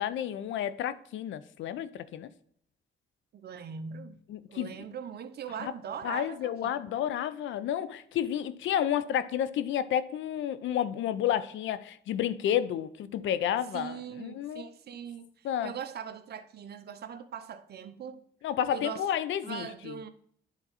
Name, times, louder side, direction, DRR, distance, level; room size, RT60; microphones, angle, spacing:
voice 1, 0.0-2.3 4.3-4.8 5.6-5.7 6.0-14.7 15.4-15.7 18.4-20.0, left 10 dB, 75° left, 0.6 m, -31 dB
voice 2, 3.3-4.2 4.5-6.8 13.7-18.2 18.7-19.0 19.4-20.1, right 7 dB, 55° right, 0.8 m, -41 dB
9.9 x 4.0 x 4.1 m
cardioid pair, 90°, 20 cm